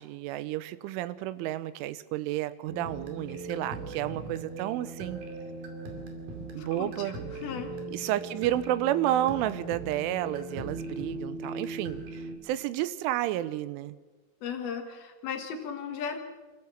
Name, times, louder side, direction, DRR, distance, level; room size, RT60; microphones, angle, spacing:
voice 1, 0.0-5.2 6.5-7.1 7.9-14.0, right 13 dB, 80° right, 15 dB, 3.1 m, -31 dB
sound 1, 2.7-12.4, right 2 dB, 50° right, 3.8 m, -39 dB
voice 2, 6.6-7.8 14.4-16.2, left 7 dB, 60° left, 5 dB, 3.0 m, -36 dB
26.5 x 14.0 x 7.2 m, 1.3 s
omnidirectional pair, 5.7 m